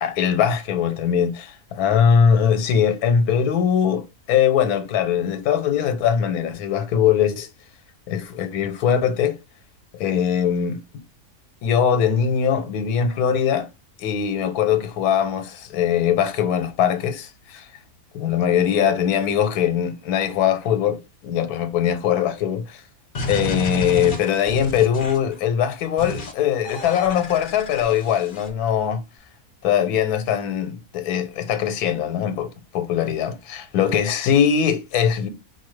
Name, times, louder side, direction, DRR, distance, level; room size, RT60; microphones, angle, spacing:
voice 1, 0.0-7.5 8.1-9.4 10.0-10.8 11.6-13.7 14.0-17.6 18.1-21.0 21.2-22.8 23.3-29.0 29.6-35.3, left 8 dB, 85° left, 1.2 m, -21 dB
sound 1, 23.1-25.3 26.0-26.3 26.6-28.5, left 2 dB, 45° left, 0.7 m, -30 dB
4.6 x 2.1 x 3.1 m
omnidirectional pair, 1.6 m